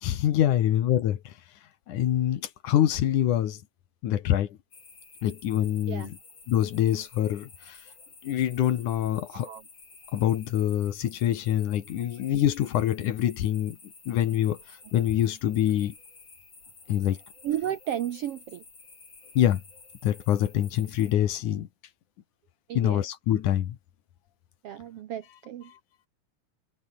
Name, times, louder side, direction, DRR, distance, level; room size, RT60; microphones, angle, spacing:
voice 1, 0.0-1.3 1.9-3.6 4.0-4.6 5.2-6.2 6.5-7.8 8.2-9.5 10.1-13.8 14.1-15.9 16.9-17.2 19.4-19.6 20.0-21.7 22.7-23.8 25.7-25.8, left 11 dB, 70° left, 2.8 m, -25 dB
sound 1, 4.7-21.1, left 4 dB, 45° left, 7.6 m, -52 dB
voice 2, 17.4-18.6 22.7-23.0 24.6-25.7, right 11 dB, 70° right, 1.4 m, -33 dB
omnidirectional pair, 3.8 m